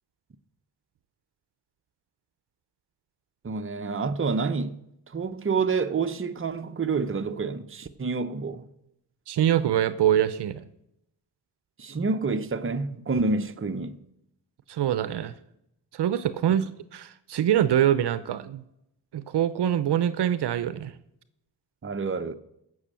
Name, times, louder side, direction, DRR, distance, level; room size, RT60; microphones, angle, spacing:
voice 1, 3.4-4.8 5.1-8.7 11.8-14.0 21.8-22.3, right 4 dB, 30° right, 1.0 m, -28 dB
voice 2, 9.3-10.6 14.7-15.3 15.9-18.6 19.1-20.9, right 10 dB, 65° right, 0.8 m, -24 dB
15.5 x 6.4 x 7.6 m
cardioid pair, 80°, 43 cm